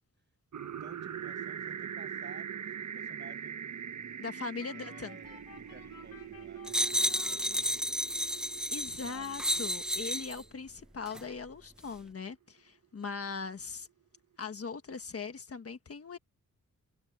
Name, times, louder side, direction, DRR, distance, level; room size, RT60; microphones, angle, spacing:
sound 1, 0.5-10.4, right 8 dB, 65° right, 1.2 m, -43 dB
voice 1, 0.8-4.2 4.7-7.9 8.9-9.4, right 4 dB, 35° right, 6.1 m, -55 dB
voice 2, 4.2-5.2 8.7-13.9 14.4-16.2, left 5 dB, 45° left, 1.5 m, -40 dB
sound 2, 4.6-8.1, left 8 dB, 90° left, 4.0 m, -55 dB
sound 3, 6.7-10.4 11.1-11.2, equal, ahead, 0.7 m, -32 dB
wide cardioid pair, 160°, 32 cm